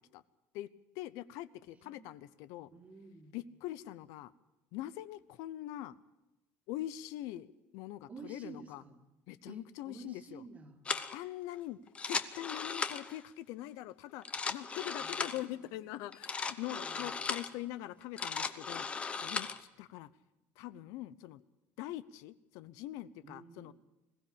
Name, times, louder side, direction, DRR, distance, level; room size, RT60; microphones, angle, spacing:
voice 1, 0.9-2.7 3.3-4.3 4.7-6.0 6.7-8.8 9.3-10.4 11.1-11.8 12.1-18.9 19.2-20.1 20.6-21.4 21.8-23.7, left 14 dB, 75° left, 16 dB, 0.8 m, -43 dB
voice 2, 1.7-2.1 2.7-3.3 8.1-9.0 9.5-10.8 15.0-15.7 16.8-17.2 23.2-23.7, right 4 dB, 25° right, 5 dB, 2.3 m, -52 dB
sound 1, 10.9-11.2 11.9-13.2 14.1-15.5 16.1-17.5 18.0-19.6, left 5 dB, 20° left, 0.9 m, -37 dB
21.0 x 15.5 x 8.7 m, 0.97 s
cardioid pair, 155°, 6 cm